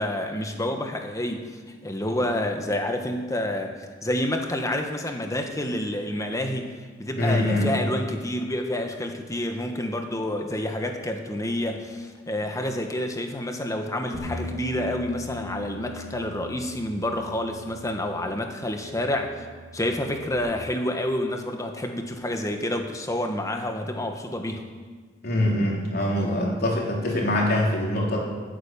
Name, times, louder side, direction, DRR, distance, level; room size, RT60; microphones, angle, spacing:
voice 1, 0.0-1.5 1.8-19.3 19.7-24.6, left 1 dB, 20° left, 4 dB, 1.4 m, -28 dB
voice 2, 7.2-7.7 25.2-28.2, left 1 dB, 60° left, -2 dB, 3.4 m, -24 dB
Bass guitar, 14.1-20.4, left 1 dB, 30° right, 3.5 m, -40 dB
16.5 x 9.2 x 6.9 m, 1.5 s
head